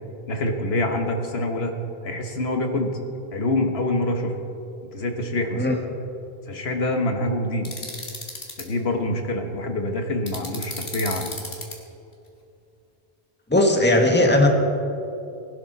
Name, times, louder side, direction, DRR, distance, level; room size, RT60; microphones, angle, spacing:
voice 1, 0.3-1.7 2.0-2.9 3.3-4.3 4.9-5.7 6.5-7.7 8.6-11.3, left 1 dB, 80° left, 4 dB, 1.5 m, -25 dB
sound 1, 7.6-8.6 10.3-11.7, left 2 dB, 65° left, 2.3 m, -34 dB
voice 2, 13.5-14.5, left 1 dB, 10° left, 2 dB, 1.4 m, -17 dB
20.5 x 12.0 x 4.1 m, 2.7 s
omnidirectional pair, 1.0 m